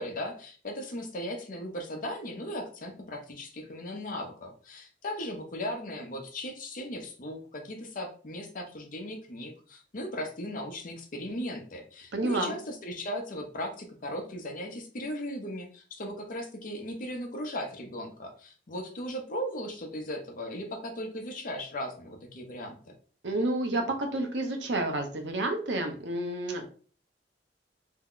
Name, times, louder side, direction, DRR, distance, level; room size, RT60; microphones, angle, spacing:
voice 1, 0.0-22.9, equal, 50° left, 3 dB, 0.7 m, -37 dB
voice 2, 12.1-12.5 23.2-26.6, right 2 dB, 85° right, 4 dB, 0.8 m, -30 dB
2.8 x 2.2 x 3.7 m, 0.41 s
head